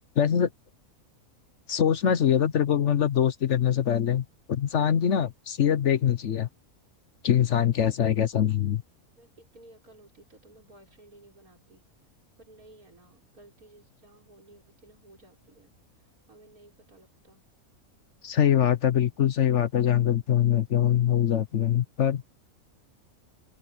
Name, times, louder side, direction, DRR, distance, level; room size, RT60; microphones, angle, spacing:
voice 1, 0.2-0.5 1.7-6.5 7.2-8.8 18.2-22.2, left 9 dB, 60° left, 1.1 m, -23 dB
voice 2, 9.2-11.8 12.4-15.8 16.3-17.5, right 2 dB, 80° right, 6.3 m, -55 dB
open air
omnidirectional pair, 1.5 m